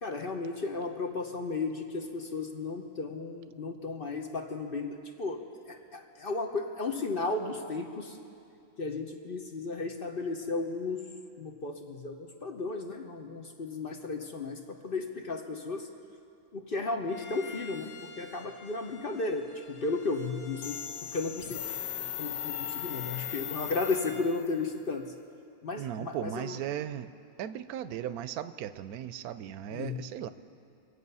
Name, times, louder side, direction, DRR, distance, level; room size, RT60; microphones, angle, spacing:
voice 1, 0.0-8.2 8.8-11.0 11.4-15.9 16.5-20.8 21.1-21.8 22.2-25.1 25.6-26.6 29.7-30.0, left 3 dB, 45° left, 4 dB, 0.9 m, -34 dB
Bowed string instrument, 17.1-24.3, left 4 dB, 30° left, 1.4 m, -51 dB
sound 1, 20.6-24.5, left 10 dB, 75° left, 1.1 m, -37 dB
voice 2, 25.8-27.1 27.4-30.3, right 10 dB, 85° right, 13 dB, 1.1 m, -37 dB
24.5 x 8.3 x 5.5 m, 2.5 s
omnidirectional pair, 1.5 m